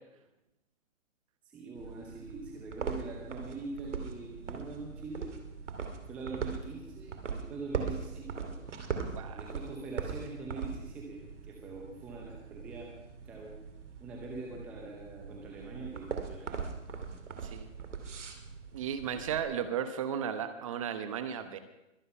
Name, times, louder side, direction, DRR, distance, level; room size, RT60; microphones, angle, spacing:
voice 1, 1.4-5.3 6.1-8.6 9.3-12.9 13.2-13.5 14.0-16.6, right 3 dB, 5° right, -1 dB, 0.7 m, -43 dB
sound 1, 1.7-19.4, right 5 dB, 60° right, 2.7 m, -41 dB
voice 2, 18.7-21.6, right 8 dB, 25° right, 9 dB, 1.0 m, -35 dB
23.0 x 9.1 x 5.6 m, 0.93 s
hypercardioid pair, 150°, 40 cm